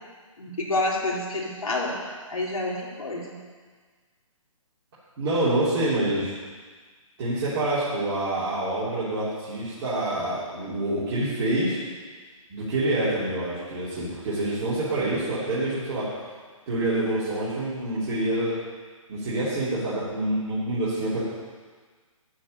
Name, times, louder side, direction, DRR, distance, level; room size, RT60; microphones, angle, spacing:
voice 1, 0.4-2.0 2.3-3.4, left 2 dB, 85° left, -3 dB, 3.0 m, -28 dB
voice 2, 5.2-6.4 7.2-11.8 12.5-16.1 16.7-18.5 19.1-21.2, right 1 dB, 40° right, -12 dB, 3.7 m, -26 dB
12.5 x 4.8 x 8.6 m, 1.5 s
hypercardioid pair, 140°, 18 cm